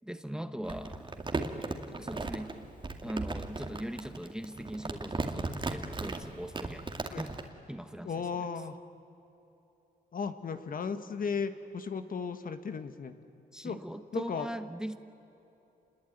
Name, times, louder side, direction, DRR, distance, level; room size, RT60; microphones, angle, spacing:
voice 1, 0.0-1.2 2.0-2.5 3.0-6.9 7.2-7.3 7.7-8.5 13.5-15.0, right 1 dB, 5° right, 10 dB, 1.0 m, -40 dB
Crumpling crinkling, 0.6-7.4, right 3 dB, 30° right, 2.2 m, -36 dB
voice 2, 8.0-8.7 10.1-13.1 13.6-13.8 14.1-14.5, left 5 dB, 55° left, 9 dB, 1.6 m, -35 dB
27.5 x 21.0 x 9.4 m, 3.0 s
cardioid pair, 90°, 17 cm